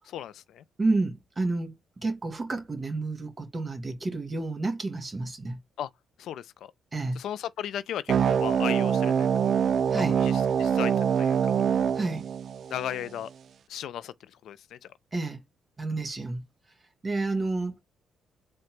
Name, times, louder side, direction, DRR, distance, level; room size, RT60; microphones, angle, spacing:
voice 1, 0.1-0.6 5.8-5.9 6.2-6.5 7.1-9.3 10.2-11.5 12.7-13.3 13.7-14.8, left 10 dB, 75° left, 0.3 m, -36 dB
voice 2, 0.8-5.6 6.9-7.2 9.9-10.2 11.9-12.3 15.1-15.4 15.8-16.4 17.0-17.8, right 3 dB, 25° right, 1.5 m, -30 dB
sound 1, 8.1-13.1, right 7 dB, 60° right, 0.3 m, -25 dB
3.8 x 2.2 x 4.5 m
cardioid pair, 90°, 0 cm